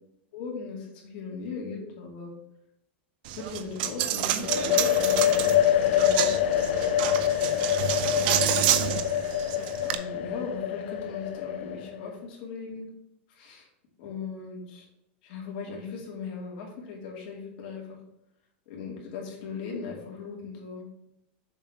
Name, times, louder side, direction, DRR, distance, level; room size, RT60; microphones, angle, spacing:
voice 1, 0.3-2.3 3.3-6.4 8.1-8.6 9.8-12.9 13.3-13.7 14.0-14.9 15.2-18.0 18.7-20.9, left 5 dB, 50° left, -1 dB, 2.5 m, -38 dB
Coin (dropping), 3.3-10.0, right 12 dB, 55° right, 0.6 m, -29 dB
sound 1, 4.4-12.1, left 11 dB, 75° left, 0.6 m, -25 dB
7.1 x 4.0 x 5.8 m, 0.82 s
supercardioid pair, 165°, 6 cm